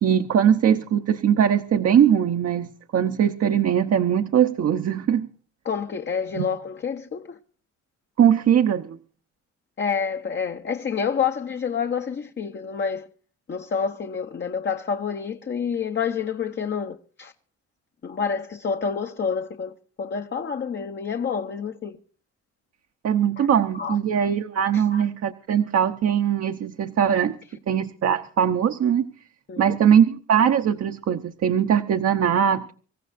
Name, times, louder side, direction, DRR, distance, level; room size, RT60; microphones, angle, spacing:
voice 1, 0.0-5.3 6.3-6.5 8.2-9.0 23.0-27.3 27.7-29.1 29.6-32.7, right 8 dB, 55° right, 0.9 m, -21 dB
voice 2, 5.6-7.4 9.8-13.1 13.5-17.3 18.0-22.0 23.4-23.5 23.7-24.0 24.7-25.0 29.5-29.8, left 6 dB, 35° left, 0.8 m, -28 dB
26.0 x 14.5 x 2.6 m
cardioid pair, 90°, 30 cm